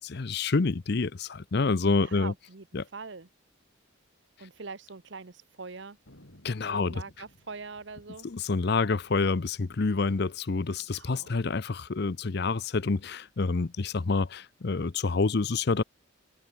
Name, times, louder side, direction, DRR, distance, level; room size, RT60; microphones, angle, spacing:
voice 1, 0.0-2.3 2.7-2.8 6.4-7.0 8.2-15.8, left 4 dB, 55° left, 0.6 m, -28 dB
voice 2, 1.8-2.6 2.9-3.3 4.4-6.0 6.7-8.3 10.9-11.4, right 4 dB, 60° right, 1.0 m, -43 dB
Thunder, 6.1-10.9 11.1-11.2 11.4-12.0 12.5-13.7, left 1 dB, 75° left, 5.1 m, -60 dB
head